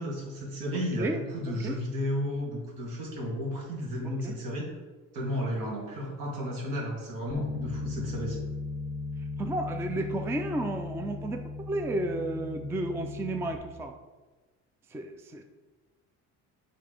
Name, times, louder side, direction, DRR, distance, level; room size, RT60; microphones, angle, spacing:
voice 1, 0.0-4.8 5.1-8.4, equal, 75° right, -2 dB, 2.1 m, -33 dB
voice 2, 1.0-1.8 4.2-4.4 9.4-13.9 14.9-15.4, right 2 dB, 10° right, 6 dB, 0.3 m, -32 dB
Bass guitar, 7.3-13.5, left 3 dB, 15° left, 0.9 m, -37 dB
7.9 x 3.7 x 5.0 m, 1.3 s
cardioid pair, 145°, 33 cm